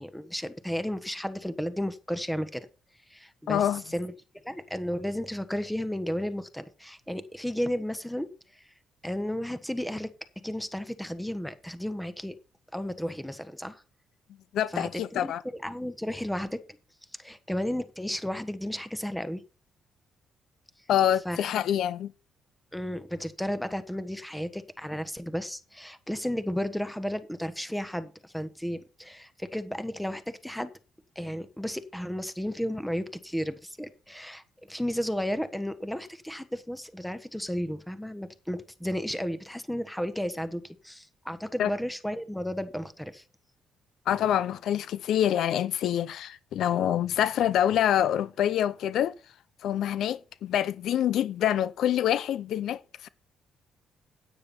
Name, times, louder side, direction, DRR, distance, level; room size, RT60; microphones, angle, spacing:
voice 1, 0.0-2.7 3.1-3.6 3.9-4.1 4.4-8.6 9.0-10.1 10.4-12.4 12.7-13.8 14.7-16.6 17.2-19.4 21.2-21.5 22.7-30.7 31.1-43.2, equal, 5° left, 1.3 m, -33 dB
voice 2, 3.5-3.8 14.5-15.4 20.9-22.1 41.6-41.7 44.1-49.1 49.6-53.1, left 10 dB, 75° left, 0.5 m, -26 dB
9.6 x 9.1 x 4.3 m
cardioid pair, 90°, 0 cm